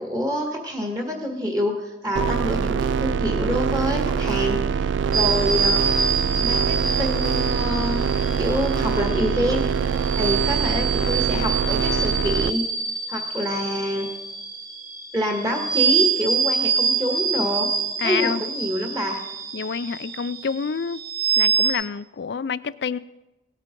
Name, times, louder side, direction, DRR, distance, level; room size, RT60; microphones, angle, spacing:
voice 1, 0.0-5.8 6.4-9.7 10.2-12.6 13.1-14.1 15.1-17.7 18.0-19.2, equal, 20° right, 2 dB, 1.6 m, -26 dB
sound 1, 2.2-12.5, right 6 dB, 80° right, 0.3 m, -24 dB
sound 2, 5.1-21.7, right 5 dB, 50° right, 1.9 m, -26 dB
voice 2, 18.0-18.4 19.5-21.0 21.4-23.0, left 6 dB, 65° left, 17 dB, 0.4 m, -28 dB
17.5 x 8.3 x 5.2 m, 1.0 s
head